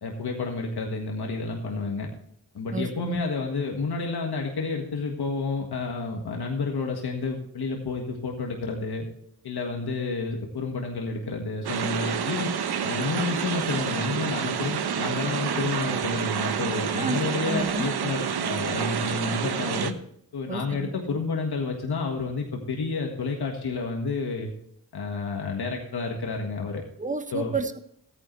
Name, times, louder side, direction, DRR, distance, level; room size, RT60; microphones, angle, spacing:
voice 1, 0.0-2.1 2.5-9.0 9.4-12.5 12.8-19.9 20.3-24.5 24.9-26.8 27.3-27.6, left 4 dB, 80° left, 1 dB, 1.7 m, -30 dB
voice 2, 2.7-3.2 16.9-17.2 17.5-17.9 20.5-21.2 27.0-27.8, right 3 dB, 20° right, 9 dB, 1.1 m, -31 dB
sound 1, 11.6-19.9, right 7 dB, 85° right, 0.9 m, -28 dB
14.0 x 9.7 x 3.2 m, 0.70 s
cardioid pair, 55°, 38 cm